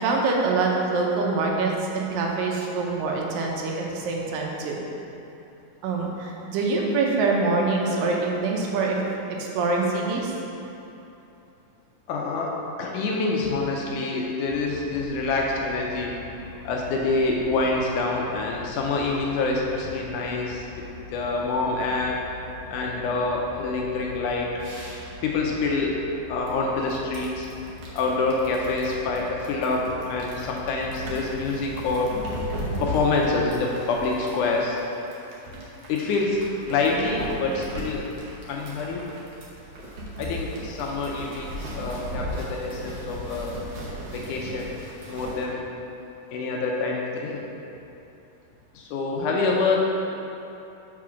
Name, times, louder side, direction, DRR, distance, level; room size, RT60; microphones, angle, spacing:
voice 1, 0.0-4.8 5.8-9.0 9.4-10.3, right 3 dB, 80° right, -1 dB, 2.5 m, -25 dB
voice 2, 12.1-12.5 12.8-16.1 16.6-20.7 21.1-22.2 22.7-24.5 25.2-26.0 26.3-27.5 27.9-32.2 32.8-34.8 35.9-36.4 36.7-38.0 38.5-39.1 40.2-43.6 44.1-44.7 45.1-45.6 46.3-47.4 48.8-49.8, left 3 dB, 75° left, -1 dB, 2.0 m, -26 dB
sound 1, 14.4-33.0, left 3 dB, 40° right, 2.0 m, -43 dB
sound 2, 26.5-26.6 26.8-45.4, equal, 65° right, 1.5 m, -36 dB
5.7 x 4.8 x 6.2 m, 2.9 s
omnidirectional pair, 3.9 m